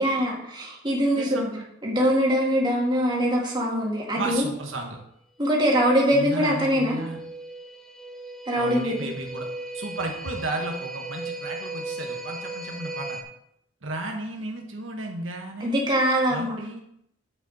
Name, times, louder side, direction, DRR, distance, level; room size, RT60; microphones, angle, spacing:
voice 1, 0.0-1.4 1.8-4.5 5.4-7.0 8.5-9.0 15.6-16.6, equal, 25° right, -3 dB, 2.2 m, -23 dB
voice 2, 1.1-1.6 4.1-5.0 6.1-7.2 8.6-9.5 9.7-13.2 13.8-15.9 16.3-16.8, right 2 dB, 80° right, 1 dB, 1.3 m, -34 dB
sound 1, 6.5-13.2, right 2 dB, 5° left, 1.0 m, -37 dB
8.0 x 7.2 x 4.2 m, 0.76 s
head